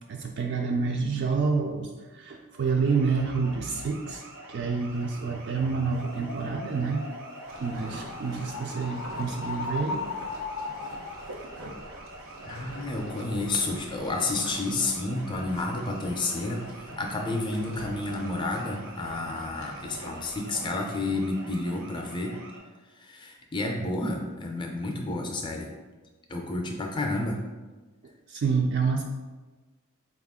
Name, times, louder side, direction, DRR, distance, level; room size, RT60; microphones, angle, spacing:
voice 1, 0.1-4.2 4.5-7.0 7.6-10.0 28.3-29.0, right 5 dB, 55° right, 1 dB, 0.3 m, -28 dB
sound 1, 2.8-22.6, right 2 dB, 90° right, 1.1 m, -47 dB
sound 2, 5.6-11.3, left 4 dB, 85° left, 0.4 m, -38 dB
sound 3, 7.4-20.8, right 1 dB, 70° right, 0.8 m, -45 dB
voice 2, 12.4-22.3 22.9-25.7 26.3-27.4, left 2 dB, 20° left, 2 dB, 0.4 m, -30 dB
4.3 x 2.3 x 3.5 m, 1.3 s
head